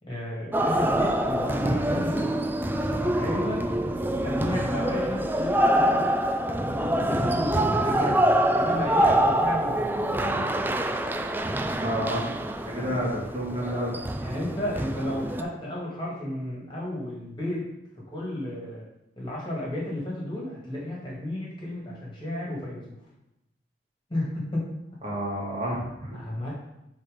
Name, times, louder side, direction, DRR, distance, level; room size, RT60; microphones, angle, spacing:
voice 1, 0.0-2.3 3.0-3.6 4.1-6.0 6.8-10.1 14.2-17.7 18.1-18.8 19.2-22.8 24.1-24.7 26.1-26.5, left 1 dB, 25° left, -5 dB, 2.0 m, -33 dB
sound 1, 0.5-15.4, right 1 dB, 10° right, 0.3 m, -25 dB
voice 2, 11.8-12.2 12.7-14.0 25.0-26.2, equal, 35° right, -5 dB, 2.1 m, -30 dB
7.4 x 4.3 x 5.0 m, 0.87 s
head